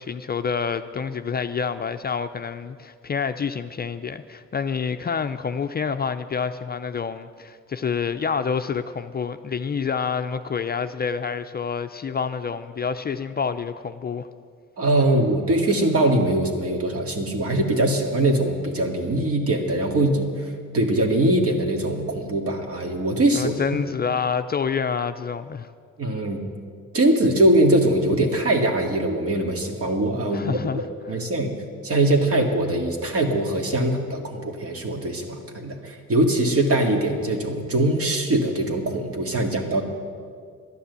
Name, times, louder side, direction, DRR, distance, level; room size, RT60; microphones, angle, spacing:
voice 1, 0.0-14.3 23.3-25.7 30.3-30.9, left 6 dB, 30° left, 8 dB, 0.5 m, -28 dB
voice 2, 14.8-23.5 26.0-26.4 26.9-30.8 31.1-31.6 31.8-39.8, right 1 dB, 50° right, 3 dB, 2.1 m, -22 dB
12.0 x 10.0 x 8.2 m, 2.1 s
cardioid pair, 90°, 30 cm